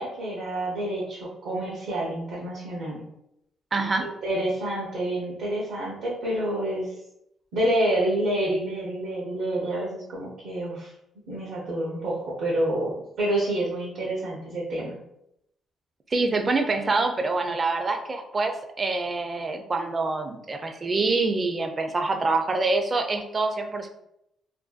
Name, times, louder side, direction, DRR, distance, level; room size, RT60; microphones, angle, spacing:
voice 1, 0.0-3.0 4.0-6.9 7.5-10.9 11.3-15.0, right 1 dB, 80° right, -5 dB, 0.6 m, -28 dB
voice 2, 3.7-4.1 16.1-23.9, right 3 dB, 35° right, 5 dB, 0.4 m, -26 dB
2.5 x 2.1 x 2.4 m, 0.79 s
cardioid pair, 90°, 0 cm